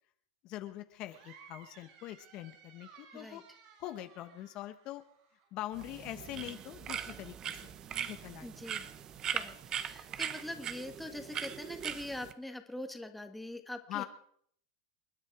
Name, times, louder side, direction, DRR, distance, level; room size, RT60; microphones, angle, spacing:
voice 1, 0.4-3.4 3.8-5.0 5.5-7.8 8.1-8.5 13.9-14.0, left 14 dB, 45° left, 9 dB, 1.1 m, -43 dB
sound 1, 1.1-5.5, right 6 dB, 50° right, 7.8 m, -58 dB
sound 2, 5.7-12.3, right 9 dB, 30° right, 1.0 m, -40 dB
voice 2, 8.4-8.8 9.3-14.1, left 1 dB, 5° left, 6 dB, 1.7 m, -43 dB
28.5 x 9.9 x 4.8 m, 0.66 s
supercardioid pair, 125°, 2 cm